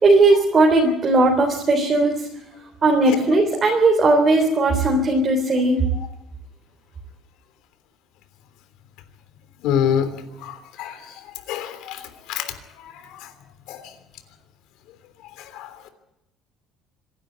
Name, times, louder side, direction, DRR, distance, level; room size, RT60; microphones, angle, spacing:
voice 1, 0.0-2.3 2.8-5.8, right 2 dB, 30° right, 1 dB, 3.7 m, -17 dB
voice 2, 9.6-10.1 10.4-11.0 11.5-12.0 12.3-12.5 12.8-12.9 13.7-13.8 15.5-15.7, left 9 dB, 75° left, 9 dB, 3.2 m, -25 dB
25.5 x 11.5 x 9.4 m, 0.88 s
cardioid pair, 140°, 0 cm